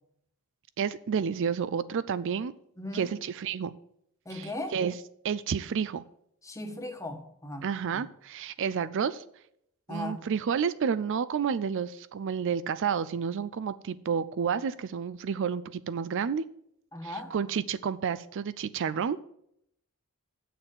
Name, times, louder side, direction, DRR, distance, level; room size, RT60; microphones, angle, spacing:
voice 1, 0.8-2.5 2.9-3.7 4.3-4.9 5.2-6.0 7.6-9.2 9.9-16.4 17.0-19.2, right 7 dB, 55° right, 16 dB, 0.4 m, -30 dB
voice 2, 2.8-3.1 4.2-4.7 6.4-8.1 9.9-10.2 16.9-17.3, left 1 dB, 15° left, 5 dB, 1.3 m, -38 dB
7.8 x 6.7 x 7.4 m, 0.73 s
head